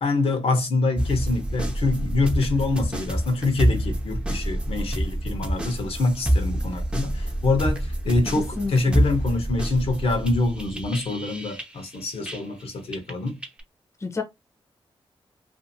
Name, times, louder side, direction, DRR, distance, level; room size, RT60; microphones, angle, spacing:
voice 1, 0.0-13.4, left 3 dB, 70° left, 0.9 m, -25 dB
sound 1, 1.0-12.6 12.9-13.6, right 1 dB, 10° right, 0.6 m, -27 dB
voice 2, 8.4-9.0 14.0-14.2, left 4 dB, 30° left, 0.7 m, -30 dB
2.6 x 2.5 x 2.6 m
cardioid pair, 85°, 10 cm